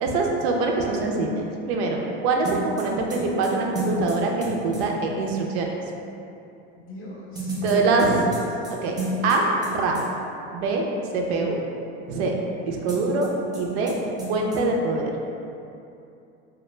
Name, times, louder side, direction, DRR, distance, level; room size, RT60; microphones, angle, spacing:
voice 1, 0.0-5.7 7.6-8.2 8.8-9.4 9.7-10.1 10.5-10.8 11.1-11.6 12.1-12.3 12.6-14.0 14.3-15.1, right 3 dB, 70° right, 0 dB, 0.5 m, -24 dB
sound 1, 2.4-4.8 7.3-9.7 9.9-10.0 12.9-13.6 13.9-14.0 14.2-14.6, right 1 dB, 10° right, 0.5 m, -31 dB
voice 2, 6.8-8.4 9.1-9.3, right 1 dB, 40° left, -6 dB, 0.6 m, -34 dB
2.1 x 2.1 x 3.1 m, 2.7 s
hypercardioid pair, 95°, 33 cm